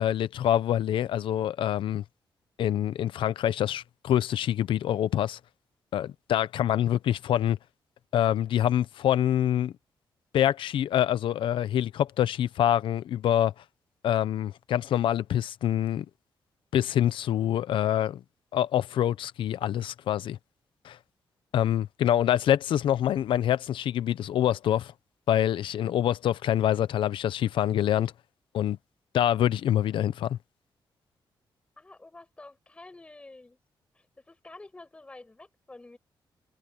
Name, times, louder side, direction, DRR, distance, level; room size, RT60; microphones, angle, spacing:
voice 1, 0.0-2.0 2.6-5.4 5.9-7.6 8.1-9.7 10.3-13.5 14.0-16.0 16.7-18.2 18.5-20.4 20.8-21.0 21.5-24.9 25.3-28.1 28.5-28.8 29.1-30.4, left 11 dB, 90° left, 0.7 m, -25 dB
voice 2, 31.8-33.6 33.9-36.0, left 2 dB, 15° left, 5.7 m, -49 dB
wide cardioid pair, 175°, 8 cm